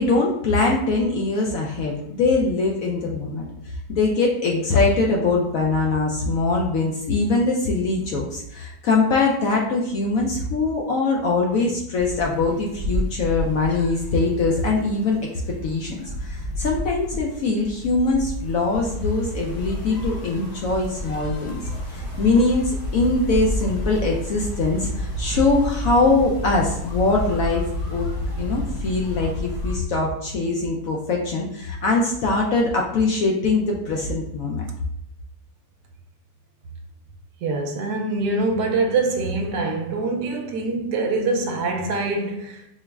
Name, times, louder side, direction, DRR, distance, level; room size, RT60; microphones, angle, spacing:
voice 1, 0.0-3.5 3.9-15.2 15.6-27.6 27.9-28.1 28.4-34.7, left 3 dB, 70° left, 0.8 m, -22 dB
sound 1, 12.0-29.8, left 1 dB, 55° left, 0.4 m, -30 dB
voice 2, 37.4-42.6, right 3 dB, 80° right, 1.1 m, -24 dB
4.5 x 2.0 x 3.3 m
omnidirectional pair, 1.8 m